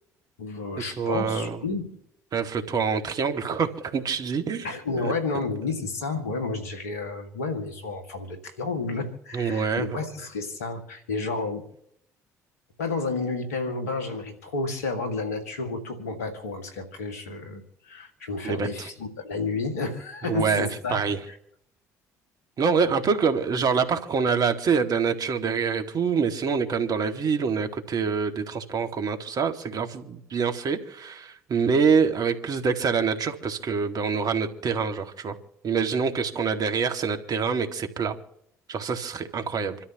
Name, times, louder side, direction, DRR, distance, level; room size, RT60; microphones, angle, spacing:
voice 1, 0.4-2.0 4.6-11.7 12.8-21.0 21.3-21.4, left 3 dB, 85° left, 6 dB, 2.2 m, -31 dB
voice 2, 1.0-1.6 2.3-4.7 9.3-9.9 18.4-18.7 20.3-21.2 22.6-35.4 35.6-38.2 38.7-39.8, right 5 dB, 50° right, 6 dB, 2.0 m, -25 dB
27.5 x 13.0 x 3.0 m, 0.73 s
hypercardioid pair, 55°, 8 cm